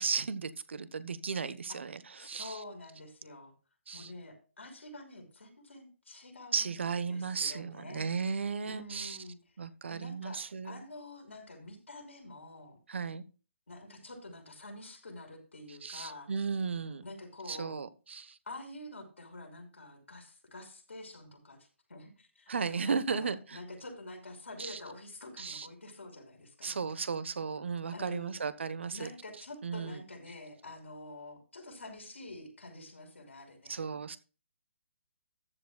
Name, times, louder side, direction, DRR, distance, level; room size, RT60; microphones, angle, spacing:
voice 1, 0.0-2.6 3.9-4.1 6.5-9.2 9.6-10.8 12.9-13.2 15.7-17.0 17.5-18.4 22.5-23.6 24.6-24.8 25.4-25.7 26.6-29.1 29.6-30.0 33.7-34.2, right 5 dB, 65° right, 14 dB, 1.2 m, -35 dB
voice 2, 2.2-3.5 3.9-6.8 7.1-8.1 8.6-9.4 9.8-12.8 13.7-16.3 17.0-17.8 18.5-26.8 27.9-28.4 28.9-33.8, left 2 dB, 80° left, 3 dB, 5.5 m, -47 dB
14.5 x 10.5 x 2.3 m, 0.34 s
figure-of-eight pair, 140°, 7 cm